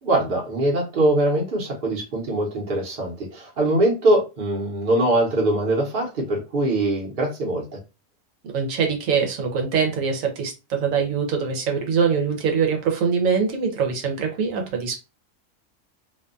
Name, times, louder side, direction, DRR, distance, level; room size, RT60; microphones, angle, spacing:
voice 1, 0.0-7.8, right 1 dB, 45° right, -2 dB, 0.9 m, -22 dB
voice 2, 8.4-15.0, right 6 dB, 85° right, 3 dB, 1.1 m, -23 dB
2.6 x 2.2 x 2.4 m, 0.27 s
omnidirectional pair, 1.4 m